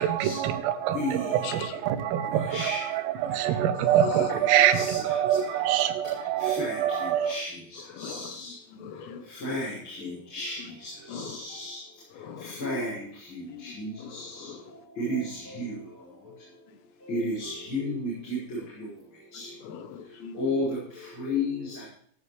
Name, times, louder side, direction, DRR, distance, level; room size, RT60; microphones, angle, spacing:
voice 1, 0.0-7.4, right 10 dB, 80° right, 10 dB, 3.7 m, -25 dB
voice 2, 7.9-8.3 8.7-9.2 11.1-11.4 12.2-12.5 13.5-13.6 14.0-14.6 19.6-20.4, left 7 dB, 80° left, 8 dB, 3.8 m, -41 dB
voice 3, 9.4-10.0 10.3-10.6 11.3-11.8 12.6-12.9 13.8-14.2 15.0-15.2 15.6-15.7 17.1-18.1 20.4-20.7 21.2-21.5, left 2 dB, 25° left, -8 dB, 5.9 m, -30 dB
17.0 x 13.5 x 3.3 m, 0.63 s
omnidirectional pair, 5.9 m